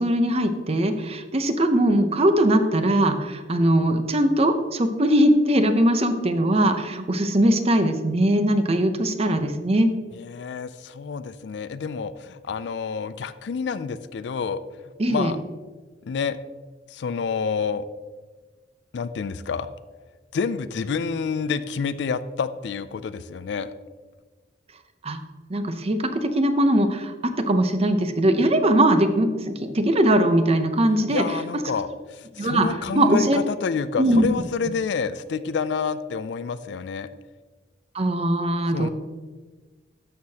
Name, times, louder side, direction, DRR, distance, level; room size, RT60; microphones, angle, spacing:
voice 1, 0.0-9.9 15.0-15.3 25.0-25.2 25.5-31.2 32.4-32.7 32.9-33.4 34.0-34.3 37.9-38.9, right 1 dB, 35° right, 8 dB, 0.7 m, -20 dB
voice 2, 10.1-14.6 15.1-15.4 16.0-16.4 16.9-17.9 18.9-19.7 20.3-23.7 31.1-37.1 38.7-38.9, left 5 dB, 70° left, 13 dB, 0.4 m, -28 dB
12.5 x 6.5 x 2.8 m, 1.4 s
head